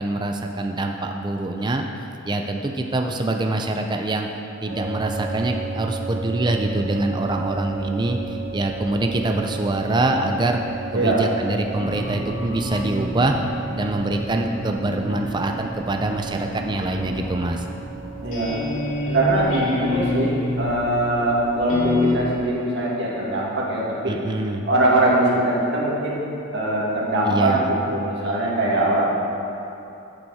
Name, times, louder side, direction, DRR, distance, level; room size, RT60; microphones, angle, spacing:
voice 1, 0.0-1.8 2.2-4.3 4.6-10.6 10.9-13.4 13.7-17.7 24.1-24.6 27.2-27.7, right 2 dB, 20° right, 3 dB, 0.5 m, -24 dB
sound 1, 4.7-22.0, right 4 dB, 85° right, 1.5 m, -34 dB
sound 2, 11.8-22.1, left 2 dB, 75° left, 2.4 m, -28 dB
voice 2, 18.2-18.6 19.1-24.1 24.7-26.2 26.5-29.1, right 1 dB, 60° right, -5 dB, 2.3 m, -22 dB
13.5 x 7.7 x 4.2 m, 2.8 s
head